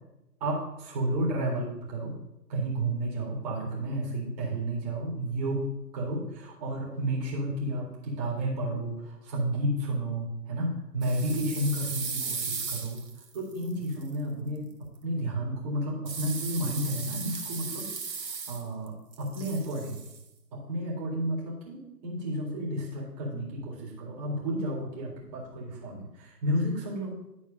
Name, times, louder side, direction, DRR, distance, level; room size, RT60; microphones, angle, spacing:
voice 1, 0.4-2.1 2.5-5.6 5.9-13.0 13.3-14.7 15.0-17.9 18.3-20.0 20.5-27.2, right 1 dB, 25° right, -3 dB, 2.2 m, -31 dB
sound 1, 11.0-14.1 16.1-18.9 19.1-20.2, right 5 dB, 90° right, 1.3 m, -36 dB
11.0 x 4.2 x 5.2 m, 0.89 s
figure-of-eight pair, 145°, 50 cm